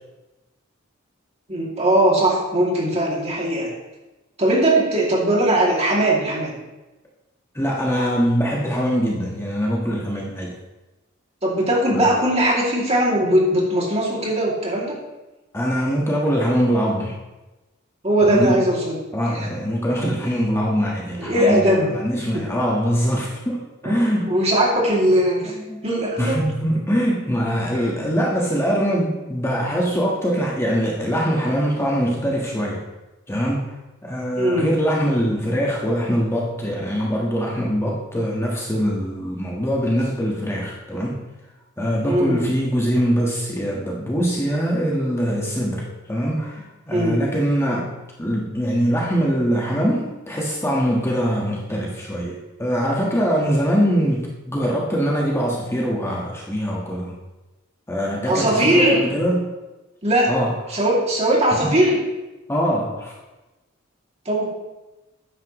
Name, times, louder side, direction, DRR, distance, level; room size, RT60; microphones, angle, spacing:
voice 1, 1.5-3.7 4.4-6.6 11.4-15.0 18.0-19.0 19.3-19.5 21.2-21.9 22.3-22.4 23.8-23.9 24.2-25.5 25.8-26.4 34.4-34.7 42.0-42.4 46.9-47.2 58.2-59.0 60.0-60.3 60.7-62.0 64.3-64.4, right 1 dB, 30° right, -3 dB, 2.5 m, -19 dB
voice 2, 7.5-10.5 11.9-12.0 15.5-17.1 18.2-18.6 19.1-24.3 25.5-25.8 26.2-32.8 33.3-33.6 34.0-41.2 41.8-57.1 57.9-59.5 60.3-60.5 61.6-61.7 62.5-63.2, equal, 15° left, -3 dB, 1.4 m, -23 dB
13.0 x 9.8 x 3.1 m, 1.1 s
head